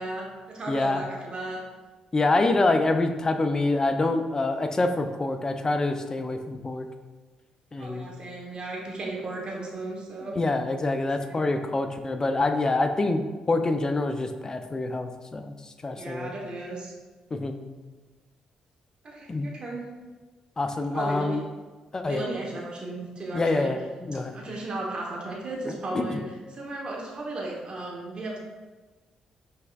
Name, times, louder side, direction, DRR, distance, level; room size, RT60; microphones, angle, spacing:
voice 1, 0.0-1.6 7.8-10.4 11.3-11.4 15.9-16.9 19.0-19.8 20.9-21.4 22.1-23.7 24.3-26.2 26.5-28.4, right 2 dB, 45° right, -2 dB, 1.0 m, -35 dB
voice 2, 0.7-1.0 2.1-6.9 7.7-8.1 10.2-13.2 13.5-16.3 17.3-17.6 19.3-19.5 20.6-21.4 21.9-22.2 23.3-24.4 25.7-26.2, left 2 dB, 30° left, 7 dB, 0.4 m, -26 dB
5.4 x 3.5 x 2.3 m, 1.3 s
supercardioid pair, 65°, 2 cm